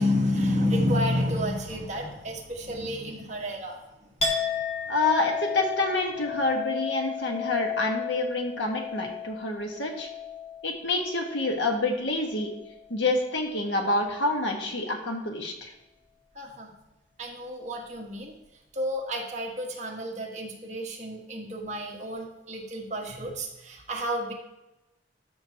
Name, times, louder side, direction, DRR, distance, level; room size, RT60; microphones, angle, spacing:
voice 1, 0.0-3.8 16.3-16.7 17.2-18.3 18.7-24.3, left 1 dB, 40° right, -1 dB, 1.5 m, -30 dB
Chink clink, 4.2-11.9 12.2-12.9, left 6 dB, 35° left, 1.4 m, -34 dB
voice 2, 4.9-10.1 10.6-12.5 12.9-15.7, left 2 dB, 90° left, 2 dB, 1.5 m, -27 dB
13.0 x 5.9 x 2.9 m, 0.96 s
head